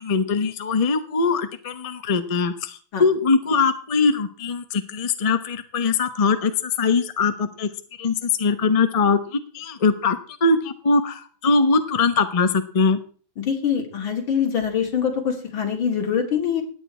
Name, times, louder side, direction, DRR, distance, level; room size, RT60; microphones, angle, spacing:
voice 1, 0.0-7.7 8.0-13.0, left 4 dB, 30° left, 9 dB, 0.7 m, -22 dB
voice 2, 13.4-16.6, left 7 dB, 85° left, 3 dB, 3.3 m, -24 dB
17.0 x 9.3 x 4.4 m, 0.41 s
omnidirectional pair, 2.1 m